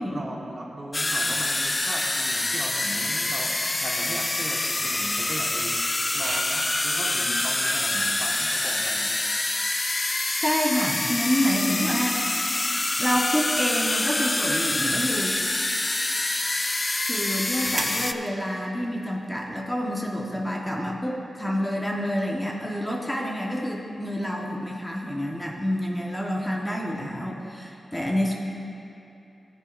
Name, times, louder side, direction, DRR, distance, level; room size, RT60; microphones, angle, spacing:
voice 1, 0.0-9.1, right 1 dB, 40° right, -2 dB, 1.7 m, -37 dB
sound 1, 0.9-18.1, left 2 dB, 30° left, 0.5 m, -26 dB
sound 2, 6.2-18.9, right 3 dB, 65° right, 0.8 m, -42 dB
voice 2, 10.4-12.6 13.0-15.3 17.1-28.3, equal, 10° left, -2 dB, 1.5 m, -28 dB
14.5 x 10.0 x 2.7 m, 3.0 s
cardioid pair, 50°, 0 cm